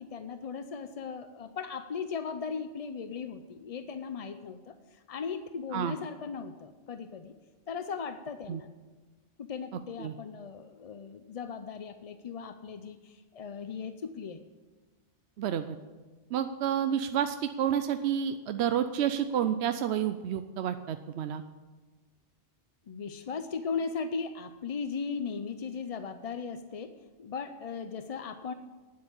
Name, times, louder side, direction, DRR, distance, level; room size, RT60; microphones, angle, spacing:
voice 1, 0.0-7.3 7.7-8.7 9.4-14.4 22.9-28.5, left 5 dB, 50° left, 9 dB, 0.4 m, -37 dB
voice 2, 15.4-15.8 16.3-21.4, right 9 dB, 70° right, 10 dB, 0.8 m, -30 dB
9.6 x 8.0 x 8.7 m, 1.3 s
omnidirectional pair, 1.2 m